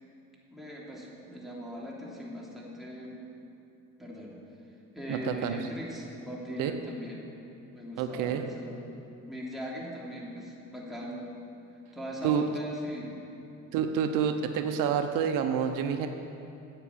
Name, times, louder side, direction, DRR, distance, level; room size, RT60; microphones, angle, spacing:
voice 1, 0.5-3.2 4.0-4.4 4.9-7.3 7.7-8.8 9.3-11.3 11.9-13.1, equal, ahead, -5 dB, 3.1 m, -40 dB
voice 2, 5.1-5.6 6.6-6.7 8.0-8.5 12.2-12.4 13.7-16.1, right 8 dB, 80° right, 6 dB, 0.9 m, -28 dB
10.0 x 8.4 x 8.7 m, 2.8 s
cardioid pair, 95°, 32 cm